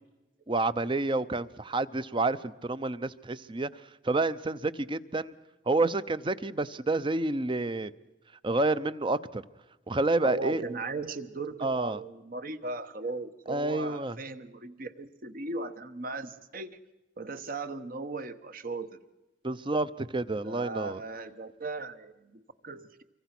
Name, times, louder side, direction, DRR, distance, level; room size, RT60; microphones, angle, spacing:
voice 1, 0.5-3.7 4.0-5.3 5.7-7.9 8.4-9.4 9.9-10.6 11.6-12.0 13.5-14.2 19.4-21.0, right 2 dB, 30° right, 15 dB, 0.7 m, -29 dB
voice 2, 10.2-16.7 17.2-19.0 20.4-23.0, right 3 dB, 50° right, 10 dB, 1.2 m, -37 dB
25.5 x 23.5 x 6.0 m, 1.1 s
head